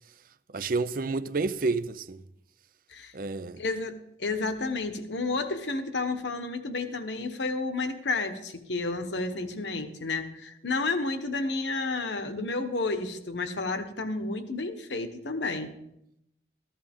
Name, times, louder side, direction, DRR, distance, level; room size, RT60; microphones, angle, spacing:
voice 1, 0.5-2.2 3.1-3.6, right 3 dB, 50° right, 0.5 m, -29 dB
voice 2, 3.6-3.9 4.2-15.7, left 3 dB, 75° left, 1.2 m, -31 dB
14.0 x 14.0 x 3.6 m
head